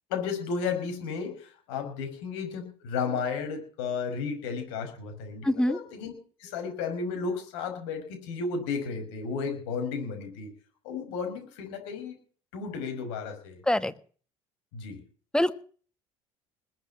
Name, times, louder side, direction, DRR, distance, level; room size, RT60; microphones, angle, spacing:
voice 1, 0.1-6.1 6.4-10.5 10.8-12.2 12.5-13.6 14.7-15.0, left 5 dB, 75° left, 5 dB, 5.7 m, -33 dB
voice 2, 5.4-5.8 13.7-13.9 15.3-15.5, left 1 dB, 5° left, 13 dB, 1.4 m, -24 dB
20.5 x 8.0 x 7.3 m, 0.41 s
hypercardioid pair, 65°, 14 cm